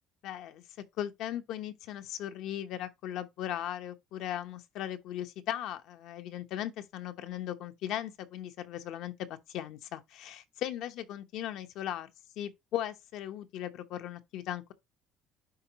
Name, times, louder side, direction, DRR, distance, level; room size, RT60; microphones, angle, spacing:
voice 1, 0.2-0.6 1.0-9.1 9.5-14.7, left 11 dB, 65° left, 0.9 m, -38 dB
10.5 x 3.9 x 3.0 m
cardioid pair, 155°, 0 cm